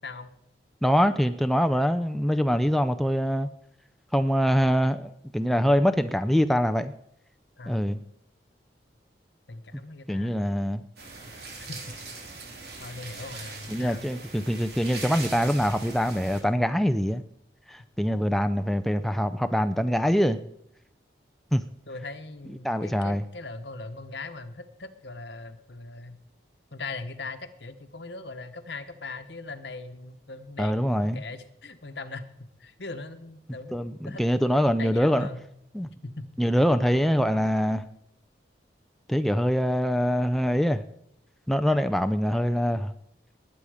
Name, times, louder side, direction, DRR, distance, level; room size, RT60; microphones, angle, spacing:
voice 1, 0.8-3.5 4.1-6.9 7.7-8.0 10.1-10.8 13.7-17.2 17.7-20.4 21.5-21.6 22.6-23.2 30.6-31.2 33.7-35.3 35.7-35.9 36.4-37.8 39.1-40.8 41.5-42.9, equal, ahead, 8 dB, 0.4 m, -24 dB
voice 2, 7.6-7.9 9.5-10.5 11.7-11.8 12.8-14.1 21.9-26.2 26.7-32.3 32.6-33.8 34.0-35.5 36.0-36.2, left 3 dB, 70° left, 10 dB, 1.1 m, -40 dB
sound 1, 11.0-16.4, right 3 dB, 60° right, 2.9 m, -41 dB
19.5 x 8.5 x 5.0 m, 0.75 s
head